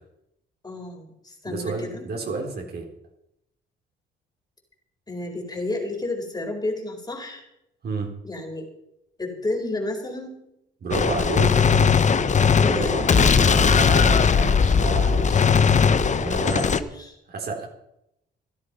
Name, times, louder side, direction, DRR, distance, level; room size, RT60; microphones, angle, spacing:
voice 1, 0.6-2.0 5.1-7.4 8.2-8.7 9.2-10.4 12.6-13.5 15.5-17.2, left 2 dB, 20° left, 2 dB, 4.5 m, -32 dB
voice 2, 1.5-2.9 7.8-8.1 10.8-11.7 12.5-15.4 16.2-16.7 17.3-17.7, right 4 dB, 55° right, 1 dB, 3.8 m, -30 dB
Gunshot gunfire, 10.9-16.8, left 6 dB, 35° left, 0.9 m, -19 dB
15.0 x 12.0 x 5.5 m, 0.80 s
cardioid pair, 90°, 20 cm